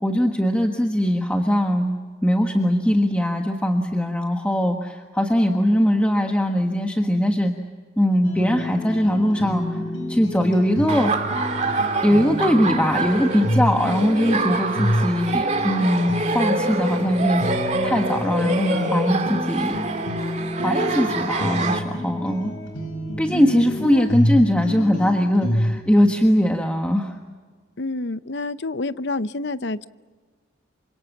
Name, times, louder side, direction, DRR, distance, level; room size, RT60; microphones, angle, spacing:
voice 1, 0.0-2.0 2.2-7.5 8.0-9.8 10.1-11.1 12.0-17.4 17.8-19.7 20.6-22.5 23.2-27.2, equal, 5° left, 2 dB, 1.4 m, -21 dB
sound 1, 8.2-25.8, left 1 dB, 80° left, 6.1 m, -28 dB
Laughter, 10.9-21.8, right 3 dB, 35° right, 2.3 m, -26 dB
voice 2, 23.3-24.2 25.4-25.6 27.8-29.9, left 2 dB, 60° left, 14 dB, 0.7 m, -28 dB
27.5 x 26.0 x 7.3 m, 1.5 s
head